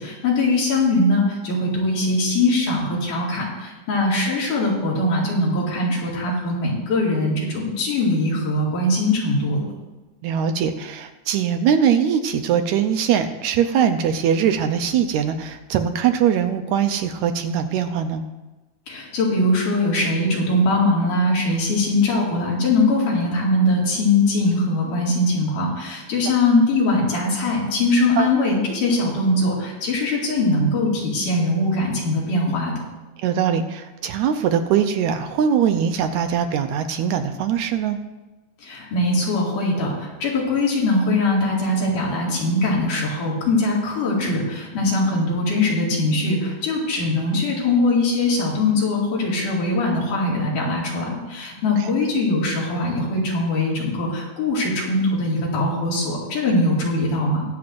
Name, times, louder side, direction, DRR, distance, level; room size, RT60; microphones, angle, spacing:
voice 1, 0.0-9.7 18.9-32.7 38.6-57.5, left 2 dB, 85° left, -4 dB, 3.8 m, -21 dB
voice 2, 10.2-18.2 28.2-28.3 33.2-38.0 51.8-51.9, right 8 dB, 75° right, 7 dB, 1.8 m, -21 dB
21.5 x 7.7 x 2.6 m, 1.1 s
omnidirectional pair, 3.6 m